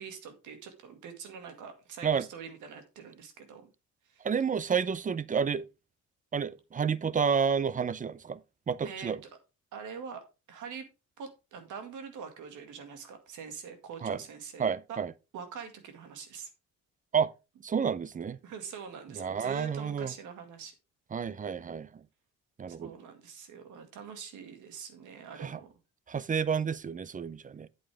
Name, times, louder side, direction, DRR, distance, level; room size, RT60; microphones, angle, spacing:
voice 1, 0.0-3.7 4.1-4.3 8.8-9.3 9.7-10.9 11.2-15.0 15.3-16.5 18.4-20.7 22.7-25.7, right 6 dB, 85° right, 2.1 m, -44 dB
voice 2, 4.2-5.6 6.3-8.4 8.7-9.2 14.0-14.2 14.6-15.1 17.1-17.3 17.6-18.4 19.2-20.1 21.1-22.0 22.6-22.9 25.4-25.6 26.1-27.7, right 6 dB, 25° right, 0.6 m, -30 dB
8.6 x 7.9 x 3.4 m
cardioid pair, 90°, 30 cm